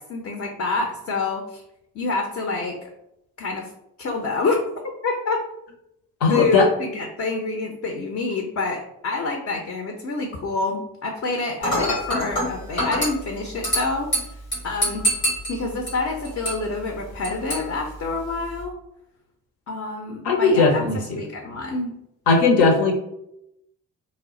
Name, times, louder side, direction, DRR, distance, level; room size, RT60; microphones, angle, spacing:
voice 1, 0.0-1.6 1.9-2.9 3.4-3.7 4.0-4.6 5.0-5.4 6.3-14.1 14.6-15.1 15.5-18.7 19.7-20.8 21.1-22.0, left 3 dB, 40° left, 2 dB, 0.6 m, -27 dB
voice 2, 6.2-6.7 20.2-21.0 22.3-22.9, left 4 dB, 70° left, 2 dB, 0.8 m, -17 dB
Dishes pots and pans / Glass, 11.6-18.6, equal, 85° left, 1.1 m, -28 dB
2.1 x 2.1 x 3.7 m, 0.82 s
figure-of-eight pair, 40°, 43 cm